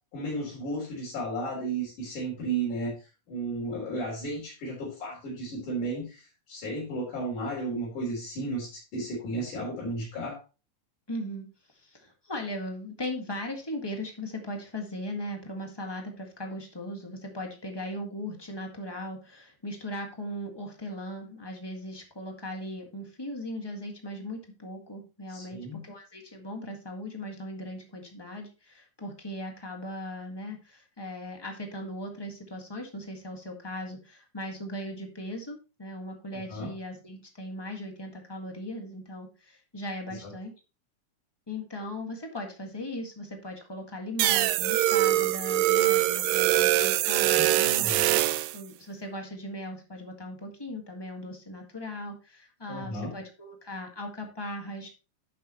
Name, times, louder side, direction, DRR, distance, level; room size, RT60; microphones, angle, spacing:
voice 1, 0.1-2.9 3.3-10.4 25.3-25.8 36.5-36.7 40.1-40.3 47.4-48.1 52.7-53.1, right 2 dB, 85° left, -6 dB, 5.2 m, -34 dB
voice 2, 11.1-40.5 41.5-48.2 48.5-54.9, left 1 dB, 15° left, 2 dB, 0.9 m, -38 dB
sound 1, 44.2-48.6, right 15 dB, 80° right, 1.6 m, -23 dB
11.0 x 6.9 x 3.0 m, 0.32 s
omnidirectional pair, 3.5 m